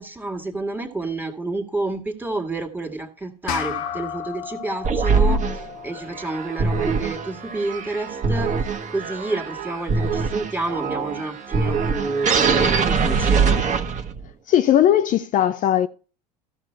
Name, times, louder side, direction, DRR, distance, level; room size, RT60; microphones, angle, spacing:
voice 1, 0.0-8.5 8.9-13.5, right 2 dB, 10° right, 2.0 m, -29 dB
sound 1, 3.5-8.2, left 9 dB, 65° left, 0.8 m, -35 dB
sound 2, 4.8-14.3, right 5 dB, 40° right, 1.4 m, -23 dB
voice 2, 14.5-15.9, left 11 dB, 40° left, 0.5 m, -18 dB
13.5 x 6.2 x 4.5 m
hypercardioid pair, 75°, 20 cm